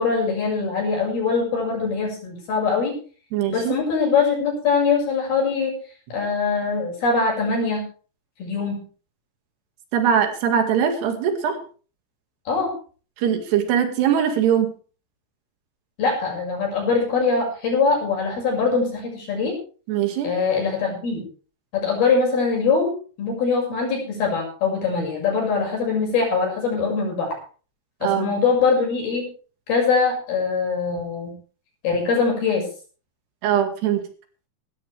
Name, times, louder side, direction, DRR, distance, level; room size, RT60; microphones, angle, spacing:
voice 1, 0.0-2.9 3.5-5.8 6.1-7.8 8.4-8.8 12.5-12.7 16.0-19.6 20.2-21.2 21.7-27.4 28.0-29.3 29.7-31.3 31.8-32.7, left 4 dB, 60° left, 0 dB, 7.9 m, -22 dB
voice 2, 3.3-3.8 9.9-11.6 13.2-14.7 19.9-20.3 28.0-28.3 33.4-34.1, right 8 dB, 75° right, 6 dB, 4.1 m, -21 dB
18.5 x 13.5 x 3.4 m, 0.38 s
omnidirectional pair, 4.9 m